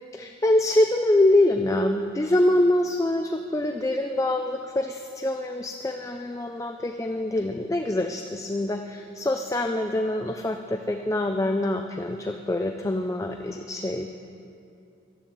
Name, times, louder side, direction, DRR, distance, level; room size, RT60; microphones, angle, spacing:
voice 1, 0.1-14.1, left 1 dB, 15° left, 5 dB, 0.4 m, -25 dB
13.0 x 7.7 x 8.7 m, 2.6 s
head